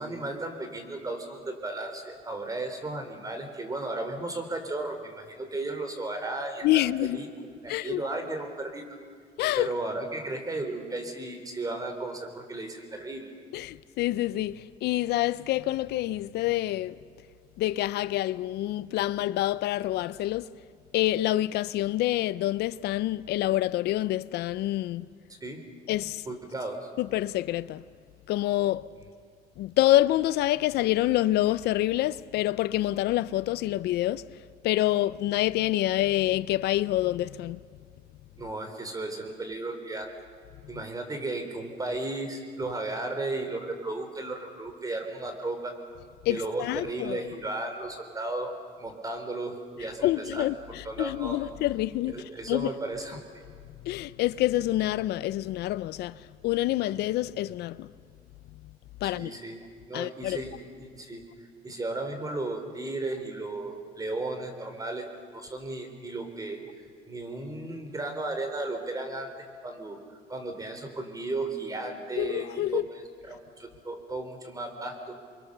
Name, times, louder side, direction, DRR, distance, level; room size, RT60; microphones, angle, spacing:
voice 1, 0.0-7.3 7.6-8.8 9.6-13.3 25.4-25.6 26.3-26.9 38.4-40.1 40.7-45.7 46.3-48.5 48.8-50.5 50.8-51.5 52.1-53.2 59.0-61.2 61.6-65.1 65.3-66.6 67.1-69.3 69.6-70.0 70.3-75.1, right 2 dB, 20° right, 4.3 m, -35 dB
voice 2, 6.6-7.2 7.7-8.0 9.4-9.7 13.5-17.0 17.6-20.5 20.9-25.1 25.9-26.2 27.0-27.8 28.3-28.9 29.6-34.2 34.6-37.6 46.2-47.2 50.0-52.7 53.8-56.2 56.4-57.9 59.0-59.3 59.9-60.4 72.2-72.8, left 15 dB, 75° left, 0.6 m, -27 dB
29.0 x 23.5 x 6.8 m
cardioid pair, 110°, 17 cm